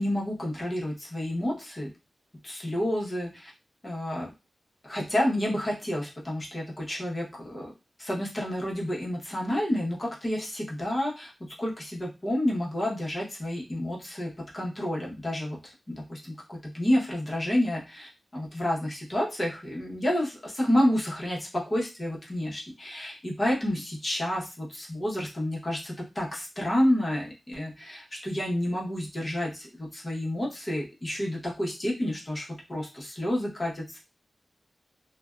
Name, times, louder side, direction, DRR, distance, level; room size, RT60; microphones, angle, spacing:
voice 1, 0.0-1.9 2.4-3.5 3.8-4.3 4.8-7.7 8.0-34.0, left 1 dB, 30° left, -3 dB, 0.9 m, -29 dB
2.5 x 2.1 x 2.3 m, 0.27 s
wide cardioid pair, 110°, 0 cm